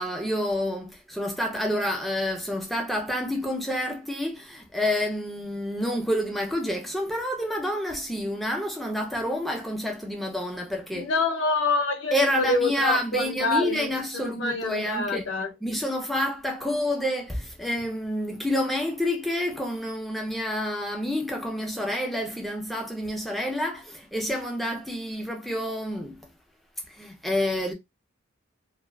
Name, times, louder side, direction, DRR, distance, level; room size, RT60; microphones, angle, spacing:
voice 1, 0.0-11.1 12.1-15.3 15.6-26.3 26.9-27.7, left 1 dB, ahead, 0.4 m, -28 dB
voice 2, 10.9-15.5, left 3 dB, 60° left, 0.6 m, -27 dB
2.4 x 2.3 x 2.2 m
head